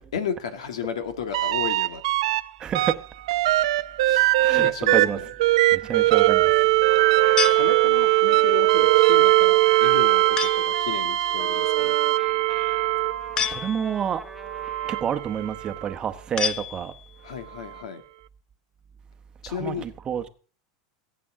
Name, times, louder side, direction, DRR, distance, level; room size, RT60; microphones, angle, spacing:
voice 1, 0.1-2.0 4.0-5.2 7.4-12.0 17.2-18.0 19.4-19.9, left 7 dB, 90° left, 1.7 m, -33 dB
sound 1, 1.3-2.4 2.7-13.5 14.4-15.9 17.7-17.8, right 18 dB, 75° right, 0.6 m, -21 dB
voice 2, 2.6-3.0 4.4-5.2 5.7-6.7 13.4-14.2 14.8-16.9 19.5-20.3, right 8 dB, 25° right, 1.0 m, -29 dB
Trumpet, 6.8-15.1, right 3 dB, 5° right, 1.8 m, -40 dB
sound 2, 7.4-8.3 10.4-10.8 13.4-14.2 16.4-17.3, left 8 dB, 25° left, 0.6 m, -30 dB
21.5 x 8.5 x 3.7 m
supercardioid pair, 130°, 3 cm